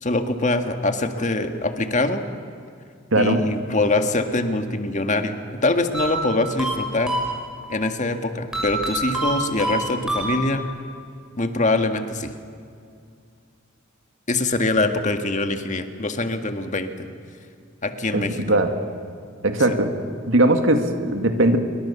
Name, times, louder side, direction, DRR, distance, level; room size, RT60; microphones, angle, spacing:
voice 1, 0.0-2.3 3.2-7.2 7.7-10.6 11.4-12.3 14.3-17.1 17.8-18.4 19.7-19.8, left 2 dB, 40° left, 7 dB, 1.8 m, -23 dB
voice 2, 3.1-3.4 18.1-18.7 19.4-19.9 20.3-21.6, right 1 dB, 75° right, 6 dB, 2.2 m, -19 dB
sound 1, 5.9-7.8 8.5-10.8, right 1 dB, 5° right, 5.6 m, -27 dB
27.5 x 23.5 x 7.2 m, 2.4 s
head